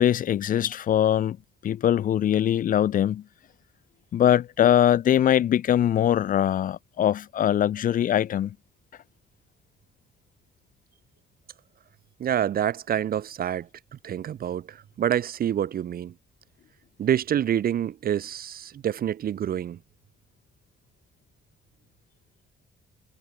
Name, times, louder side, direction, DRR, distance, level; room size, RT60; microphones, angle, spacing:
voice 1, 0.0-1.4 1.6-3.2 4.1-8.5, left 10 dB, 45° left, 0.4 m, -22 dB
voice 2, 12.2-13.7 14.0-16.1 17.0-19.8, right 10 dB, 50° right, 0.5 m, -27 dB
cardioid pair, 90°, 20 cm